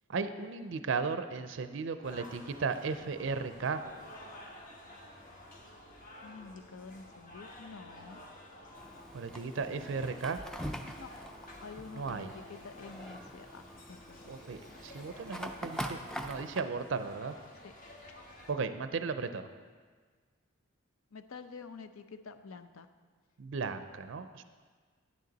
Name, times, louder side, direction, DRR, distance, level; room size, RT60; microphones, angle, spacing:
voice 1, 0.1-3.8 9.1-10.4 12.0-12.3 14.3-17.3 18.5-19.5 23.4-24.4, right 4 dB, 60° right, 10 dB, 0.4 m, -35 dB
sound 1, 2.0-18.5, left 1 dB, 40° left, 1.1 m, -52 dB
voice 2, 6.2-8.2 10.8-11.1 11.6-14.3 17.6-17.7 21.1-22.9, left 4 dB, 85° left, 10 dB, 0.6 m, -48 dB
Fire, 8.8-16.6, equal, 5° left, 0.4 m, -44 dB
10.5 x 9.3 x 4.0 m, 1.6 s
head